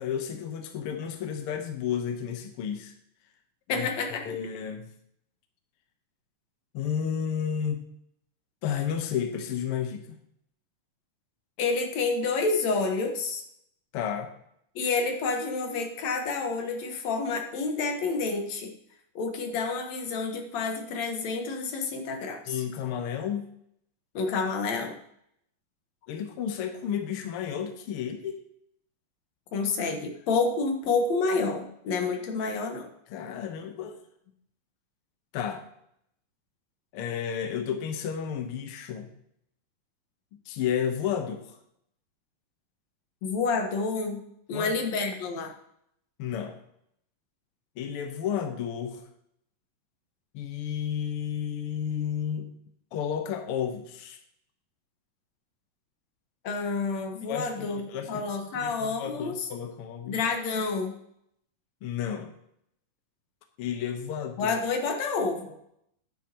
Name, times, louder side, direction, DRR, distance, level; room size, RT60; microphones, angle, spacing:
voice 1, 0.0-2.9 3.7-3.9 4.2-4.9 6.7-7.8 8.6-10.2 13.9-14.3 22.5-23.4 26.1-28.4 33.1-34.0 35.3-35.7 36.9-39.1 40.4-41.6 44.5-44.7 46.2-46.6 47.8-49.0 50.3-52.5 52.9-54.2 57.3-58.2 58.5-60.2 61.8-62.3 63.6-64.6, left 8 dB, 80° left, 5 dB, 1.2 m, -32 dB
voice 2, 3.7-4.2 11.6-13.4 14.8-18.7 19.2-22.6 24.1-25.0 29.5-32.9 43.2-44.2 44.5-45.5 56.4-59.5 60.1-61.0 64.4-65.6, left 4 dB, 60° left, 4 dB, 2.2 m, -29 dB
10.5 x 9.1 x 2.9 m, 0.72 s
omnidirectional pair, 4.0 m